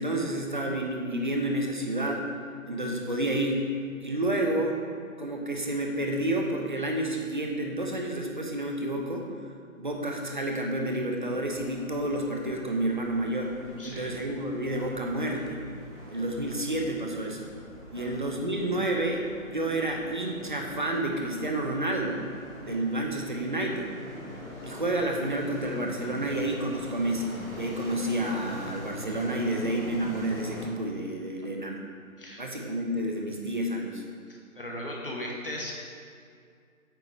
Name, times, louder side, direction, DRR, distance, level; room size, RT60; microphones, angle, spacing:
voice 1, 0.0-2.3 2.7-3.6 4.0-4.8 5.2-9.3 9.8-13.5 13.8-15.6 16.1-17.5 17.9-22.2 22.6-23.9 24.6-31.8 32.4-34.0, right 1 dB, 35° right, 1 dB, 0.9 m, -30 dB
sound 1, 11.3-30.6, left 1 dB, 5° right, 1.8 m, -43 dB
voice 2, 13.8-14.1 17.9-18.1 32.2-32.4 34.5-35.7, left 1 dB, 40° left, -2 dB, 1.1 m, -37 dB
8.7 x 6.1 x 4.1 m, 2.2 s
figure-of-eight pair, 170°, 42 cm